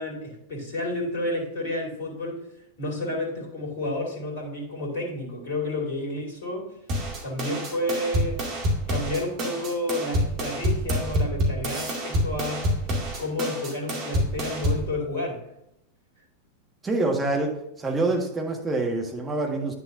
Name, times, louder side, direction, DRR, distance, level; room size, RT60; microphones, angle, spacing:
voice 1, 0.0-2.4 2.8-6.7 7.2-8.4 8.9-12.7 13.2-15.4, left 1 dB, 55° left, 0 dB, 2.4 m, -30 dB
sound 1, 6.9-14.9, equal, 35° right, 2.3 m, -27 dB
voice 2, 16.8-17.5 17.8-19.7, right 2 dB, 15° right, 1 dB, 1.5 m, -26 dB
10.0 x 6.8 x 2.6 m, 0.82 s
figure-of-eight pair, 90°, 0 cm